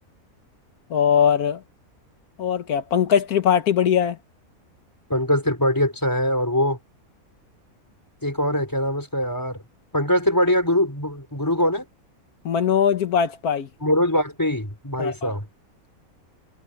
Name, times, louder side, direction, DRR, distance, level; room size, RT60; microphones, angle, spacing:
voice 1, 0.9-1.6 2.4-4.2 12.4-13.7 15.0-15.3, left 8 dB, 85° left, 1.6 m, -20 dB
voice 2, 5.1-6.8 8.2-9.6 9.9-11.8 13.8-15.5, left 1 dB, 15° left, 4.2 m, -22 dB
omnidirectional pair, 1.5 m